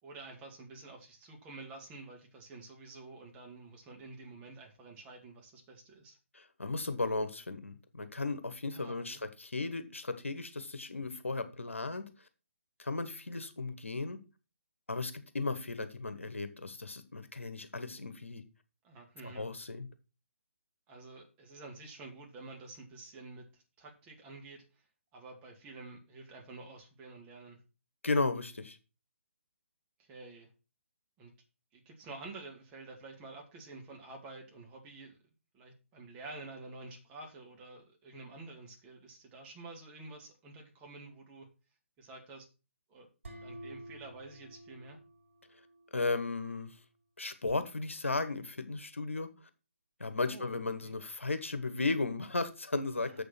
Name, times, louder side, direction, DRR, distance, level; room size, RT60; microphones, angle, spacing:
voice 1, 0.0-6.2 8.7-9.2 18.8-19.5 20.9-24.6 25.1-27.6 30.0-30.5 31.2-31.3 31.7-35.2 35.5-41.5 42.0-42.5 42.9-43.1 43.4-45.0 50.2-50.9, right 3 dB, 15° right, 1 dB, 2.3 m, -49 dB
voice 2, 6.3-12.1 12.8-14.2 14.9-18.4 19.2-19.9 28.0-28.8 45.9-46.8 47.2-49.3 50.0-53.2, left 3 dB, 70° left, 10 dB, 1.4 m, -35 dB
sound 1, 43.2-46.0, right 1 dB, 60° right, 6.1 m, -50 dB
7.6 x 6.8 x 5.9 m, 0.31 s
figure-of-eight pair, 140°, 7 cm